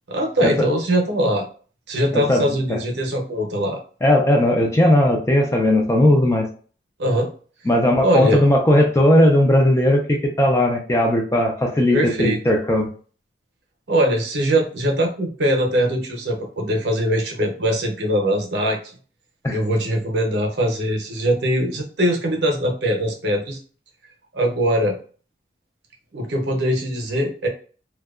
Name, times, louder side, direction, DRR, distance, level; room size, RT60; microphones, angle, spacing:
voice 1, 0.1-1.4 1.9-3.8 7.0-7.3 8.0-8.4 11.9-12.4 13.9-18.8 19.5-23.6 24.3-24.9 26.1-27.5, equal, 70° right, 1 dB, 0.7 m, -21 dB
voice 2, 2.1-2.4 2.7-2.8 4.0-6.5 7.7-12.9 19.4-19.6, left 1 dB, 15° left, 1 dB, 0.4 m, -17 dB
2.7 x 2.2 x 2.3 m, 0.41 s
head